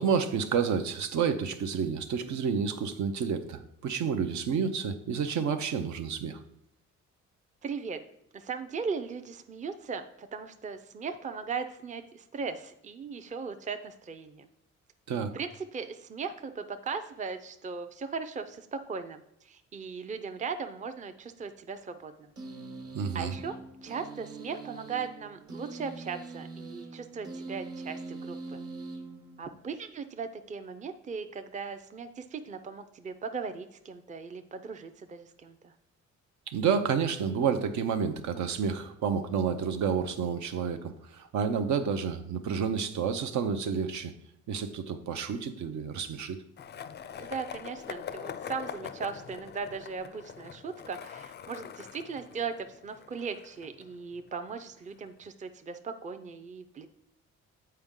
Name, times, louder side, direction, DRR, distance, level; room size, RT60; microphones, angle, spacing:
voice 1, 0.0-6.4 15.1-15.3 22.9-23.3 36.5-44.1 44.5-46.4, right 6 dB, 70° right, 8 dB, 0.7 m, -30 dB
voice 2, 7.6-8.0 8.3-14.5 15.3-22.3 23.1-23.5 23.8-28.6 29.4-35.7 47.2-56.9, right 5 dB, 25° right, 8 dB, 0.5 m, -38 dB
sound 1, 22.4-29.8, right 3 dB, 50° right, 1.3 m, -43 dB
Skateboard, 46.6-54.5, left 8 dB, 35° left, 0.4 m, -43 dB
7.6 x 4.5 x 3.7 m, 0.76 s
cardioid pair, 90°, 30 cm